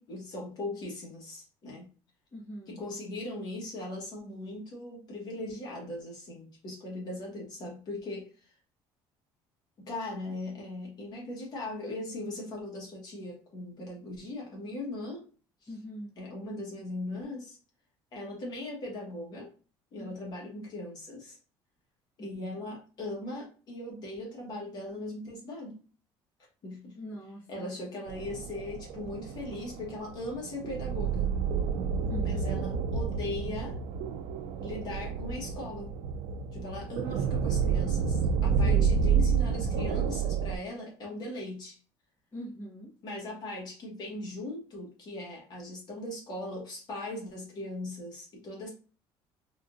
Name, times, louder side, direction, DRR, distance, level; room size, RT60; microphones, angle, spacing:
voice 1, 0.0-1.9 2.7-8.5 9.8-15.3 15.6-15.7 16.2-17.6 18.1-19.5 19.9-21.4 22.2-25.8 26.6-27.0 27.5-31.3 32.2-33.8 34.6-35.9 36.5-41.8 43.0-48.7, left 2 dB, 40° left, -2 dB, 1.3 m, -39 dB
voice 2, 2.3-2.8 15.7-16.1 20.0-20.2 22.2-22.5 27.0-27.7 32.1-32.6 38.6-38.9 42.3-42.9, equal, 20° left, -6 dB, 0.9 m, -42 dB
sound 1, 28.1-40.6, right 6 dB, 85° right, 0.4 m, -29 dB
3.6 x 2.4 x 2.6 m, 0.37 s
cardioid pair, 150°, 10 cm